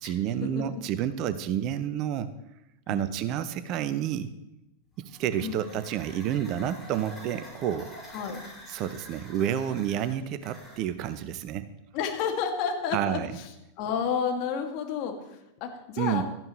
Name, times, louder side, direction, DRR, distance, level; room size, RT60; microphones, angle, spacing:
voice 1, 0.0-2.3 2.9-4.3 5.0-7.9 8.7-11.7 12.9-13.3 16.0-16.2, right 10 dB, 40° right, 13 dB, 0.8 m, -29 dB
voice 2, 2.9-3.2 5.4-5.8 8.1-8.4 11.9-13.5 13.8-16.2, left 7 dB, 40° left, 3 dB, 2.3 m, -31 dB
sound 1, 4.9-11.2, equal, 5° left, 6.0 m, -48 dB
17.0 x 13.5 x 3.2 m, 0.89 s
figure-of-eight pair, 90°, 0 cm